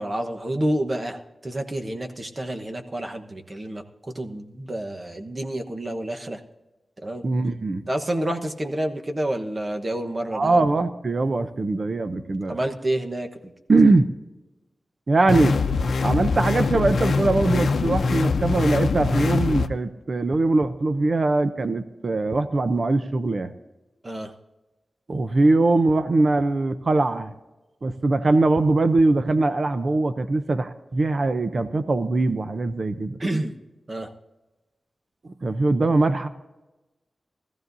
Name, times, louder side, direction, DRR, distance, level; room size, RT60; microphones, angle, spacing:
voice 1, 0.0-6.4 7.0-7.2 7.9-10.6 12.5-13.5 24.0-24.3 33.2-33.5 33.9-34.1, right 1 dB, 30° right, 4 dB, 1.1 m, -29 dB
voice 2, 7.2-7.8 10.3-12.6 13.7-14.1 15.1-15.6 16.0-23.5 25.1-27.3 27.8-33.2 35.2-36.3, right 2 dB, 45° right, 10 dB, 0.6 m, -21 dB
sound 1, 15.3-19.7, left 4 dB, 85° left, 0.6 m, -23 dB
20.0 x 14.5 x 2.7 m, 1.1 s
wide cardioid pair, 105°, 0 cm